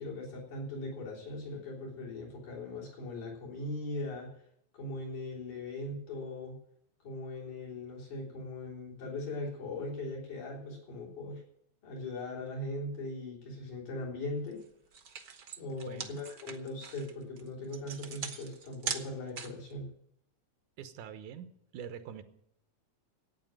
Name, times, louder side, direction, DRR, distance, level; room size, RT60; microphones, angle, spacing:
voice 1, 0.0-4.3 4.7-6.6 7.0-11.4 11.8-14.6 15.6-19.9, left 2 dB, 85° left, -3 dB, 5.2 m, -40 dB
sound 1, 14.5-14.6 14.9-19.7, right 6 dB, 65° right, 0.9 m, -41 dB
voice 2, 15.6-16.1 20.8-22.2, right 8 dB, 85° right, 9 dB, 2.5 m, -45 dB
11.5 x 9.0 x 8.9 m, 0.75 s
omnidirectional pair, 3.4 m